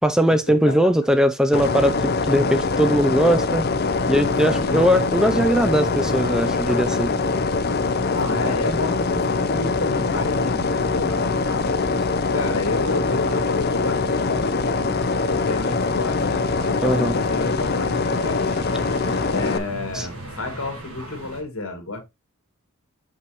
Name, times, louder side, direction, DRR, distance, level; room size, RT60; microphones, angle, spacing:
voice 1, 0.0-3.7 4.1-7.1 16.8-17.1 19.9-20.1, equal, 5° right, 0.3 m, -20 dB
sound 1, 1.5-19.6, left 4 dB, 45° left, 0.6 m, -23 dB
sound 2, 3.3-21.4, right 1 dB, 75° right, 3.4 m, -41 dB
voice 2, 4.1-4.8 8.0-11.1 12.3-18.4 19.3-22.0, left 2 dB, 65° left, 2.1 m, -30 dB
6.1 x 6.0 x 2.9 m
head